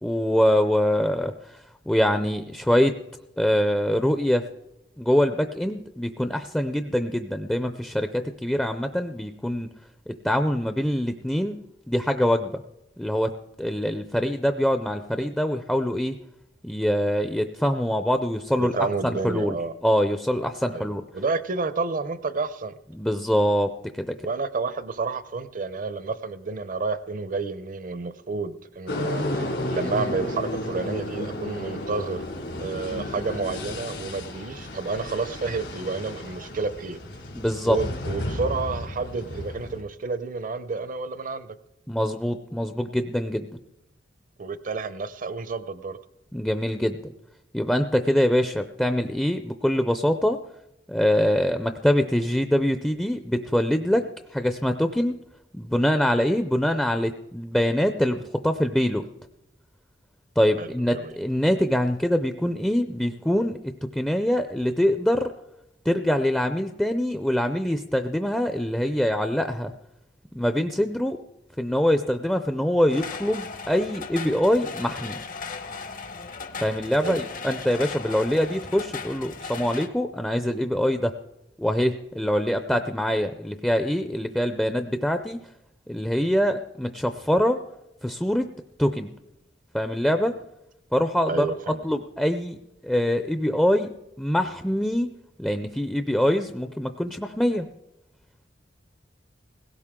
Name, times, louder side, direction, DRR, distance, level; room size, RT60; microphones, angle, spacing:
voice 1, 0.0-1.3 1.9-3.0 3.4-4.5 5.0-9.7 10.1-11.6 11.9-12.6 13.0-13.3 13.6-16.2 16.6-18.8 19.0-19.6 19.8-21.0 22.9-24.2 37.3-37.8 41.9-43.5 46.3-47.1 47.5-50.4 50.9-54.1 54.3-55.2 55.5-59.1 60.4-65.3 65.9-69.7 70.3-71.2 71.6-75.2 76.6-81.1 81.6-85.4 85.9-87.6 88.0-88.5 88.8-89.1 89.7-90.3 90.9-91.5 91.8-92.6 92.8-93.9 94.2-95.1 95.4-97.7, equal, 5° left, 7 dB, 0.5 m, -24 dB
voice 2, 18.6-19.7 20.7-20.9 21.1-22.7 24.2-32.3 32.6-37.0 37.6-41.6 44.4-46.0 60.6-61.2 77.0-77.2 91.3-91.8, right 4 dB, 50° right, 13 dB, 0.7 m, -30 dB
sound 1, 28.9-39.8, left 1 dB, 75° left, 3.0 m, -33 dB
sound 2, 72.9-79.9, left 5 dB, 50° left, 0.9 m, -37 dB
18.0 x 16.5 x 3.7 m, 0.87 s
head